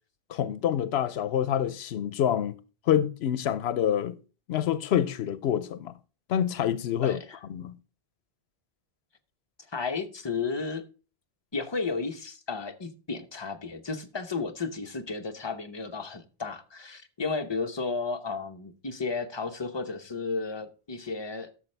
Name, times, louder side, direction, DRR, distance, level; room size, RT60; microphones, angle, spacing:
voice 1, 0.3-2.6 2.9-4.2 4.5-5.9 6.3-7.2 7.5-7.8, left 10 dB, 85° left, 0.8 m, -27 dB
voice 2, 7.0-7.4 9.7-10.8 11.5-21.5, left 4 dB, 30° left, 0.9 m, -33 dB
13.0 x 6.5 x 3.3 m
omnidirectional pair, 1.0 m